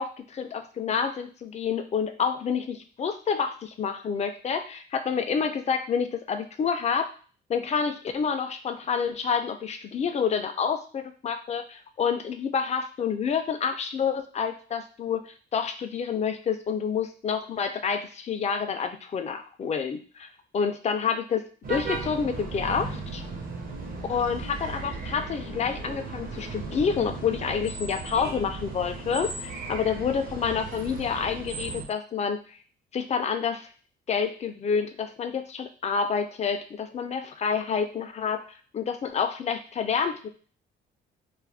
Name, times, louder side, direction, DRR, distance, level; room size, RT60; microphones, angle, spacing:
voice 1, 0.0-7.1 7.5-23.2 24.1-32.6 32.9-33.7 34.1-38.4 38.7-40.3, left 6 dB, 35° left, 7 dB, 0.4 m, -28 dB
sound 1, 21.6-31.8, right 3 dB, 45° right, 0.8 m, -36 dB
2.5 x 2.1 x 3.3 m, 0.40 s
cardioid pair, 90°, 20 cm